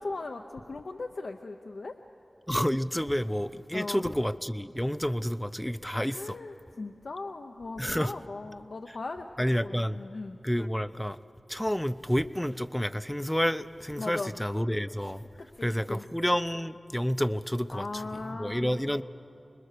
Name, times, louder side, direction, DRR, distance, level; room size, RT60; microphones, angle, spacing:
voice 1, 0.0-1.9 3.7-4.0 6.1-9.3 9.6-10.4 14.0-14.4 15.4-16.0 17.7-18.8, left 3 dB, 80° left, 4 dB, 0.7 m, -38 dB
voice 2, 2.5-6.4 7.8-8.1 9.4-10.0 10.4-11.2 11.5-15.2 15.6-19.0, equal, 5° left, 13 dB, 0.5 m, -29 dB
26.0 x 21.0 x 6.7 m, 2.8 s
wide cardioid pair, 55°, 0 cm